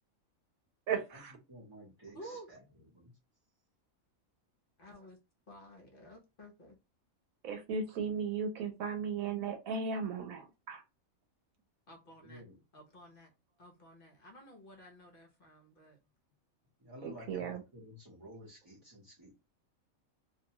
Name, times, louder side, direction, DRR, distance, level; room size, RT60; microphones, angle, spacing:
voice 1, 0.9-1.4 7.4-10.8 17.0-17.6, right 5 dB, 80° right, 1.0 m, -36 dB
voice 2, 1.5-2.6 2.9-3.1 12.2-12.6 16.8-19.3, equal, 25° right, 0.8 m, -52 dB
voice 3, 2.1-2.5 4.8-5.2 5.5-6.8 11.9-12.4 12.7-13.3 13.6-16.0, right 1 dB, 45° left, 0.9 m, -52 dB
2.6 x 2.2 x 2.8 m
omnidirectional pair, 1.4 m